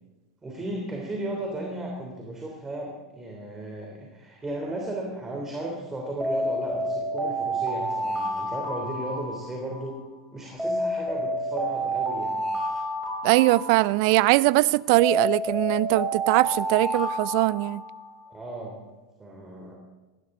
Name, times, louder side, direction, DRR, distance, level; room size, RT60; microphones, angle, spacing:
voice 1, 0.4-10.0 10.3-12.4 18.3-18.8 19.2-19.8, right 1 dB, 15° right, 3.3 m, -35 dB
Alarm, 6.2-9.9 10.6-14.3 15.0-18.2, right 1 dB, ahead, 6.7 m, -29 dB
voice 2, 13.2-17.8, right 20 dB, 55° right, 0.4 m, -21 dB
19.5 x 16.5 x 3.8 m
figure-of-eight pair, 90°, 3 cm